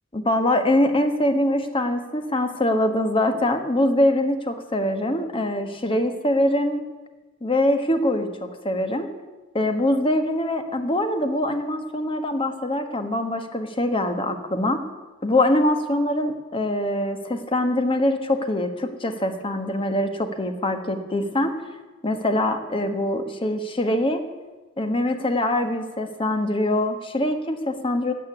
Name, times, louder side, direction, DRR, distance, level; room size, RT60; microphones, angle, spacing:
voice 1, 0.1-6.8 7.4-9.1 9.5-14.8 15.2-21.5 22.0-24.2 24.8-28.1, left 1 dB, 25° left, 7 dB, 1.4 m, -23 dB
13.5 x 8.1 x 9.6 m, 1.2 s
head